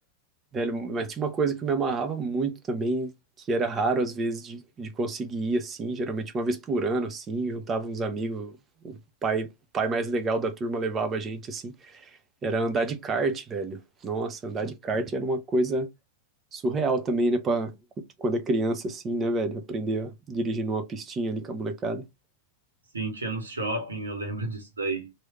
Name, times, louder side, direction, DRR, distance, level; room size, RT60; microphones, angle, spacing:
voice 1, 0.5-3.1 3.5-8.5 8.8-8.9 9.2-9.5 9.7-12.1 12.4-15.9 16.5-22.0, right 2 dB, 25° right, 0.6 m, -28 dB
voice 2, 22.9-25.1, right 2 dB, 75° right, 1.1 m, -31 dB
3.1 x 2.6 x 3.0 m
figure-of-eight pair, 90°, 0 cm